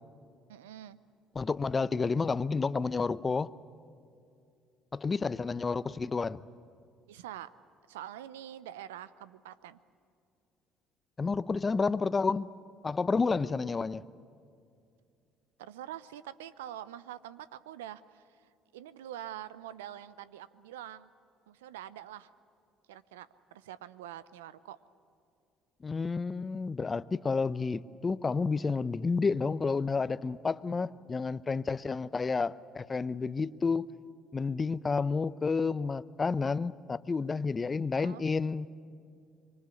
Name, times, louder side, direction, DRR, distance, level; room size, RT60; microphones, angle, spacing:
voice 1, 0.5-1.0 7.1-7.5 7.9-9.8 15.6-21.1 21.5-22.3 22.9-24.8 38.0-38.2, right 12 dB, 85° right, 16 dB, 0.7 m, -45 dB
voice 2, 1.3-3.5 4.9-6.4 11.2-12.5 12.8-14.0 25.8-33.9 34.3-38.7, left 4 dB, 30° left, 17 dB, 0.7 m, -30 dB
25.0 x 24.0 x 8.4 m, 2.4 s
hypercardioid pair, 60°, 0 cm